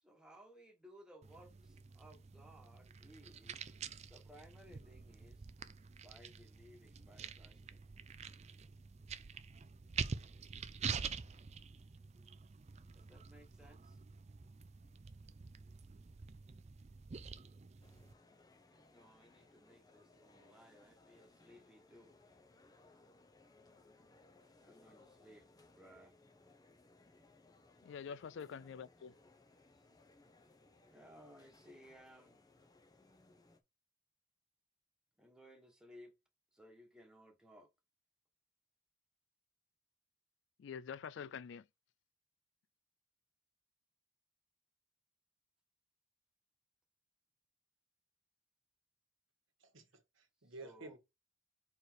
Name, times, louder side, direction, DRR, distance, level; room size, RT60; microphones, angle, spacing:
voice 1, 0.0-3.7 4.1-5.5 6.0-7.8 12.9-14.0 18.7-22.1 24.6-26.2 30.9-32.4 35.2-36.1 36.5-37.7 50.5-51.0, equal, 5° right, 1.5 m, -60 dB
sound 1, 1.2-18.1, right 5 dB, 35° right, 0.4 m, -47 dB
sound 2, 17.8-33.6, left 2 dB, 20° left, 0.8 m, -65 dB
voice 2, 27.8-29.1 40.6-41.7, left 7 dB, 65° left, 0.3 m, -46 dB
voice 3, 49.6-51.0, right 2 dB, 80° right, 1.5 m, -53 dB
4.8 x 4.6 x 4.6 m
head